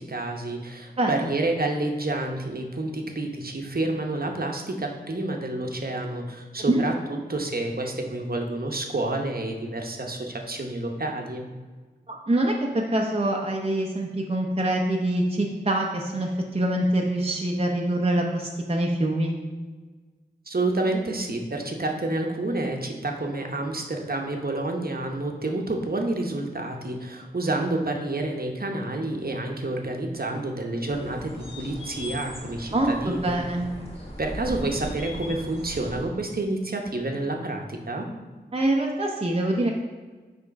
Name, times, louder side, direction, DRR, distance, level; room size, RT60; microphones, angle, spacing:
voice 1, 0.0-11.5 20.5-33.4 34.2-38.1, right 2 dB, 60° right, 2 dB, 0.9 m, -29 dB
voice 2, 1.0-1.3 6.7-6.8 12.1-19.3 32.7-33.7 38.5-39.7, right 1 dB, 35° right, 0 dB, 0.6 m, -25 dB
sound 1, 30.9-36.0, equal, 35° left, 1.7 m, -38 dB
5.9 x 3.7 x 5.2 m, 1.4 s
wide cardioid pair, 60°, 18 cm